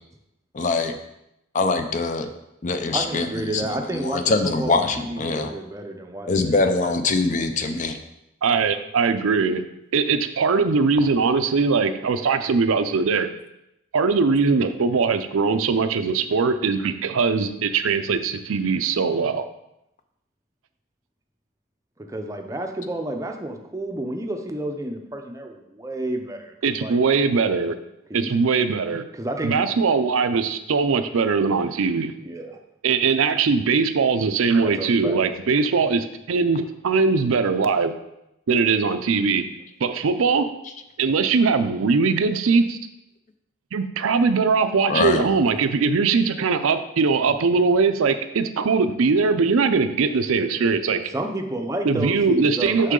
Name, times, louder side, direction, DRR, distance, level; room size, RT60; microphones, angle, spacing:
voice 1, 0.5-0.9 1.5-2.3 2.6-3.3 3.5-3.7 3.9-5.5 6.3-8.0 44.9-45.2, left 3 dB, 35° left, 8 dB, 0.5 m, -23 dB
voice 2, 2.9-6.6 6.8-6.9 22.0-27.0 28.1-28.3 29.1-30.0 32.2-32.6 34.6-35.3 51.0-52.9, right 1 dB, 15° right, 4 dB, 0.5 m, -31 dB
voice 3, 8.4-9.6 9.9-13.3 13.9-19.4 26.6-27.7 28.1-29.0 29.4-32.1 32.8-37.9 38.5-39.4 39.8-40.5 41.0-42.8 43.7-51.0 51.9-52.9, right 4 dB, 80° right, 10 dB, 0.5 m, -21 dB
6.4 x 5.7 x 3.8 m, 0.86 s
head